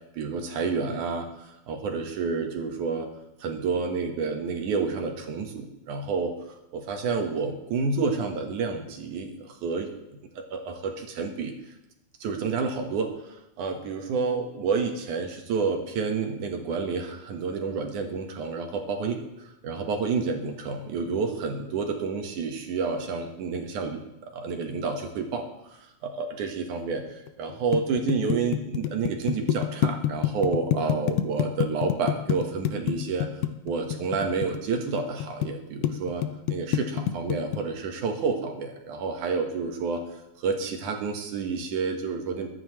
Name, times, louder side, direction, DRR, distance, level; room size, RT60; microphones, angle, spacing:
voice 1, 0.1-1.3 1.7-3.1 3.4-6.3 6.7-9.9 10.5-11.5 12.2-19.2 19.6-24.0 24.3-33.3 33.7-36.2 36.5-40.0 40.4-42.5, right 4 dB, 80° right, 3 dB, 3.0 m, -29 dB
sound 1, 27.3-35.5 35.8-37.6, left 12 dB, 90° left, 2.2 m, -26 dB
22.5 x 9.8 x 3.2 m, 0.90 s
omnidirectional pair, 3.5 m